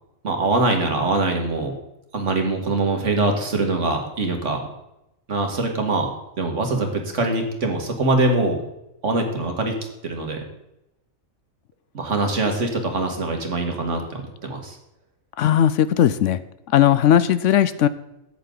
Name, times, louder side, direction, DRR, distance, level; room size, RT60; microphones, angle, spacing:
voice 1, 0.2-1.7 2.1-4.6 5.3-6.1 6.4-8.6 9.0-9.7 10.0-10.4 11.9-14.8, right 2 dB, 60° right, 3 dB, 2.1 m, -23 dB
voice 2, 15.4-16.4 16.7-17.9, left 10 dB, 70° left, 15 dB, 0.9 m, -17 dB
14.0 x 9.4 x 3.9 m, 0.89 s
omnidirectional pair, 1.4 m